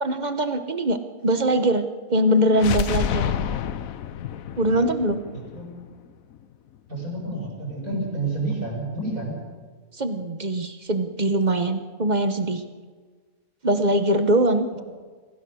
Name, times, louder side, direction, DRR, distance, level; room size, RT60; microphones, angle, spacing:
voice 1, 0.0-1.0 1.2-3.3 4.6-5.2 9.9-12.6 13.6-14.8, right 1 dB, 35° right, 9 dB, 1.1 m, -22 dB
sound 1, 2.5-6.4, left 9 dB, 70° left, 1.2 m, -29 dB
voice 2, 6.9-9.4, right 2 dB, 65° right, -1 dB, 7.0 m, -29 dB
25.0 x 16.5 x 6.3 m, 1.5 s
omnidirectional pair, 1.5 m